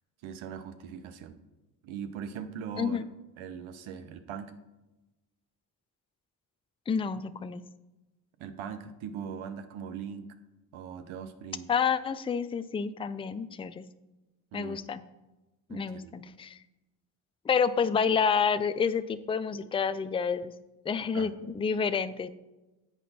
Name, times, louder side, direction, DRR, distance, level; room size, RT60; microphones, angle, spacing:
voice 1, 0.2-1.4 1.8-3.0 3.4-4.5 8.4-10.3 10.7-11.7 14.5-14.8 15.7-16.1 21.1-21.3, right 7 dB, 75° right, 10 dB, 0.9 m, -40 dB
voice 2, 6.9-7.6 11.7-13.8 14.5-15.0 15.7-16.6 17.5-20.5 20.9-22.3, left 6 dB, 15° left, 13 dB, 0.3 m, -29 dB
8.2 x 5.1 x 4.2 m, 1.0 s
hypercardioid pair, 50°, 48 cm